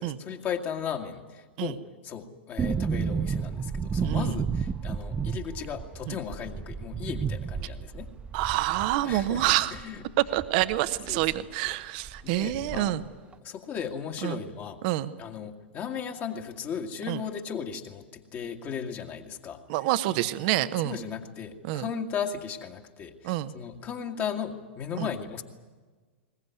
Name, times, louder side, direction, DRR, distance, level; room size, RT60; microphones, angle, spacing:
voice 1, 0.0-8.1 9.0-10.0 11.1-11.2 11.6-11.8 12.2-13.0 13.4-14.8 15.2-19.6 20.8-25.4, left 7 dB, 30° left, 3 dB, 2.0 m, -36 dB
sound 1, 2.6-11.4 11.7-11.8 12.0-13.1 13.3-13.4, right 6 dB, 15° right, 0.6 m, -32 dB
voice 2, 4.0-4.4 6.1-6.2 8.3-9.7 10.3-13.0 14.2-14.4 14.8-15.1 17.1-17.2 19.7-21.0 21.6-21.9 23.2-23.5 25.0-25.1, right 15 dB, 50° right, 13 dB, 1.0 m, -27 dB
21.0 x 20.0 x 9.5 m, 1.4 s
figure-of-eight pair, 100°, 6 cm